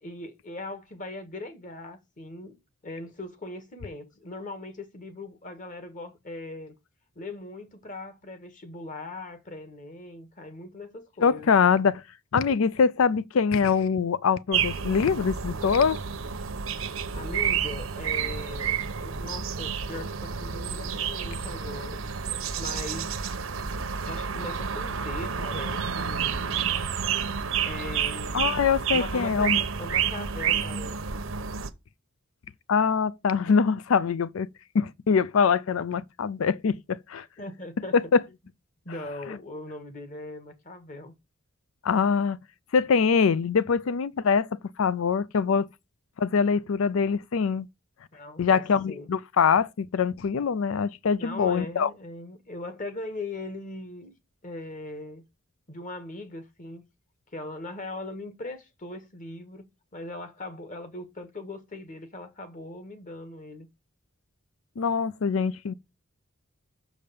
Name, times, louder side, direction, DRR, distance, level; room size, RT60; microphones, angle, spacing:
voice 1, 0.0-6.7 7.1-11.6 17.1-22.0 22.6-23.2 24.0-26.6 27.6-28.6 28.9-31.0 37.4-37.9 38.8-41.1 48.1-49.1 51.2-54.1 54.4-55.2 55.7-56.8 57.3-63.7, left 2 dB, 40° left, 1.5 m, -40 dB
voice 2, 11.2-12.0 12.3-16.0 28.3-29.6 32.7-34.5 34.7-37.2 37.9-38.2 39.3-39.4 41.8-42.4 42.7-44.5 44.8-45.7 46.2-47.7 48.4-51.9 64.8-65.7, left 6 dB, 80° left, 0.4 m, -23 dB
sound 1, 14.5-31.7, right 7 dB, 80° right, 0.9 m, -30 dB
6.6 x 5.0 x 6.9 m
head